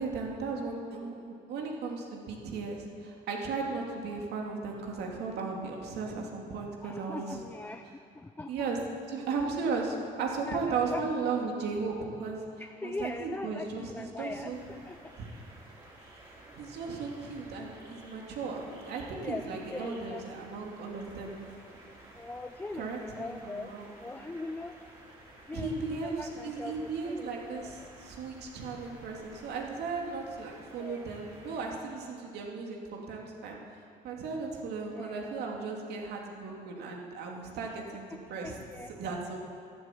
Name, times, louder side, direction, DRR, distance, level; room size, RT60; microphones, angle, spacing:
voice 1, 0.0-7.4 8.5-8.8 9.1-12.4 12.8-14.6 15.2-15.3 16.6-21.4 22.8-23.9 25.5-33.6 34.0-38.6 39.0-39.5, right 4 dB, 75° right, 0 dB, 2.7 m, -36 dB
voice 2, 6.8-8.7 10.5-11.1 12.6-15.1 19.2-19.4 19.7-20.6 22.2-24.8 25.5-27.9 30.8-31.1 34.9-35.4 38.1-38.9, left 2 dB, 10° left, 7 dB, 0.5 m, -41 dB
sound 1, 14.5-31.7, right 1 dB, 25° right, 4.6 m, -53 dB
12.5 x 12.0 x 9.1 m, 2.5 s
cardioid pair, 110°, 17 cm